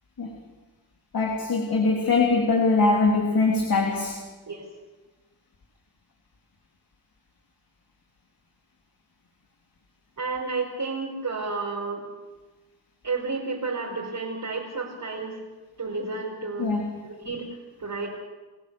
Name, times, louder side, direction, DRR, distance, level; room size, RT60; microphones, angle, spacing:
voice 1, 1.1-4.2 16.6-16.9, left 3 dB, 55° left, 1 dB, 3.3 m, -22 dB
voice 2, 10.2-12.0 13.0-15.4 15.8-17.5 17.8-18.1, right 4 dB, 45° right, -4 dB, 5.1 m, -31 dB
29.5 x 15.0 x 7.0 m, 1.2 s
cardioid pair, 75°, 42 cm